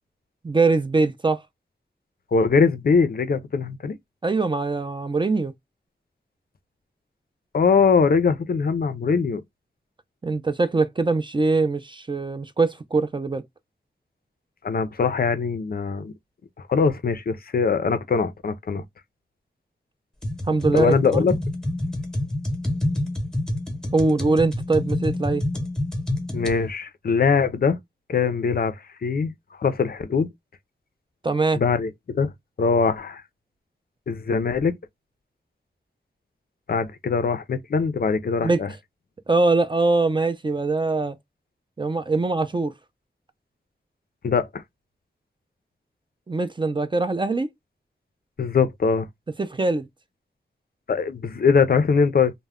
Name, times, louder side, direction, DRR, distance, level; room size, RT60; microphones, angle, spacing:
voice 1, 0.4-1.4 4.2-5.5 10.2-13.4 20.5-21.3 23.9-25.4 31.2-31.6 38.4-38.6 39.3-41.2 41.8-42.7 46.3-47.5 49.4-49.9, right 3 dB, 25° right, 0.3 m, -22 dB
voice 2, 2.3-4.0 7.5-9.4 14.6-16.1 16.7-18.8 20.7-21.3 26.3-27.8 28.1-29.3 29.6-30.3 31.6-32.3 32.6-33.2 34.1-34.7 36.7-38.7 44.2-44.6 48.4-49.1 50.9-52.3, left 5 dB, 55° left, 0.4 m, -22 dB
sound 1, 20.2-26.6, left 1 dB, 5° left, 0.9 m, -27 dB
2.2 x 2.0 x 3.4 m
wide cardioid pair, 95°, 19 cm